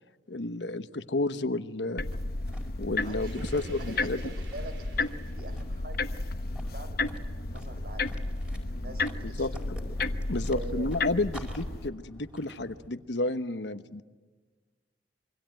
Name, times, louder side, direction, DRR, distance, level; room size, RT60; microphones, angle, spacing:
voice 1, 0.3-2.0 2.8-4.3 9.2-9.5 10.3-14.0, left 2 dB, 85° left, 11 dB, 1.2 m, -31 dB
sound 1, 2.0-11.9, left 2 dB, 60° left, 1.0 m, -33 dB
sound 2, 2.1-12.9, equal, 5° right, 4.7 m, -49 dB
voice 2, 2.9-6.1 6.7-8.1 8.5-9.7 10.3-10.9, right 1 dB, 60° right, 8 dB, 4.9 m, -45 dB
sound 3, 2.9-5.7, right 5 dB, 85° right, 3.3 m, -53 dB
27.0 x 24.0 x 9.0 m, 1.4 s
head